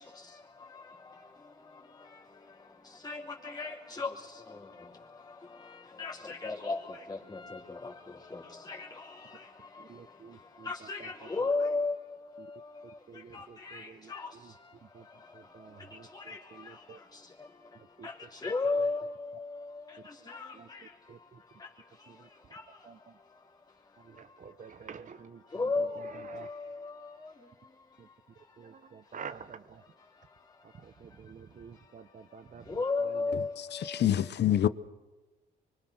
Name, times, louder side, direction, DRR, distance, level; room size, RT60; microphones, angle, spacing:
voice 1, 0.0-24.8 25.5-29.1 30.1-34.3, left 3 dB, 20° left, 3.5 m, -38 dB
voice 2, 9.8-11.5 12.4-12.5 13.1-14.5 14.8-17.0 17.7-18.3 20.5-21.4 22.1-22.5 22.8-23.2 24.0-26.5 28.0-28.1 28.6-29.8 30.6-33.4, right 6 dB, 40° right, 1.0 m, -50 dB
voice 3, 33.3-34.7, left 11 dB, 60° left, 1.0 m, -27 dB
25.5 x 23.5 x 6.4 m
cardioid pair, 90°, 20 cm